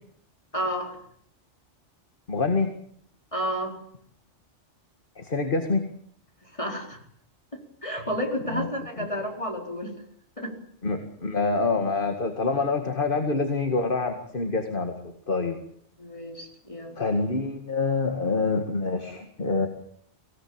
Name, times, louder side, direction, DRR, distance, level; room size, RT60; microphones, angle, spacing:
voice 1, 0.5-1.0 3.3-3.7 6.5-7.0 7.5-9.9 10.4-10.5 16.0-17.0, equal, 25° left, 2 dB, 4.7 m, -31 dB
voice 2, 2.3-2.7 5.2-5.8 8.5-8.7 9.0-9.1 10.8-14.9 15.3-15.6 17.0-19.7, left 3 dB, 45° left, 6 dB, 2.2 m, -26 dB
24.5 x 17.5 x 8.8 m, 0.66 s
omnidirectional pair, 1.2 m